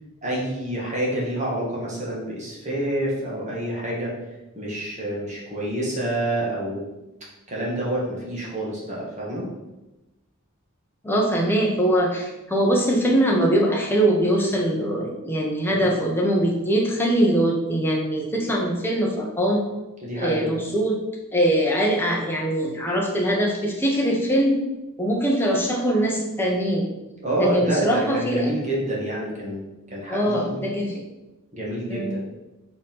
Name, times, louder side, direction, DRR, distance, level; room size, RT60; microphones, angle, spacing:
voice 1, 0.2-4.1 4.5-6.8 7.5-9.5 15.7-15.9 20.0-20.5 27.2-30.6 31.5-32.2, right 1 dB, 35° right, -5 dB, 2.1 m, -28 dB
voice 2, 11.0-19.6 20.2-21.0 21.3-24.6 25.0-26.9 27.4-28.5 30.1-31.0 31.9-32.1, right 1 dB, 10° left, -1 dB, 1.2 m, -22 dB
5.3 x 5.1 x 5.6 m, 1.0 s
head